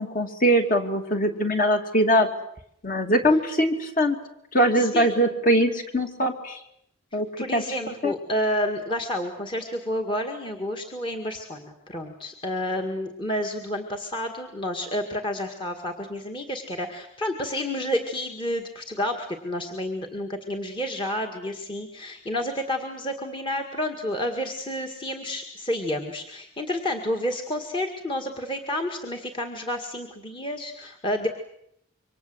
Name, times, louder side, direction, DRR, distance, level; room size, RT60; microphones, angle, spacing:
voice 1, 0.0-2.3 2.8-4.2 4.5-6.6 7.1-7.3 7.5-8.1, equal, 40° left, 5 dB, 2.7 m, -22 dB
voice 2, 4.8-5.2 7.4-31.3, left 1 dB, 25° left, 3 dB, 2.0 m, -30 dB
27.5 x 24.5 x 8.0 m, 0.74 s
head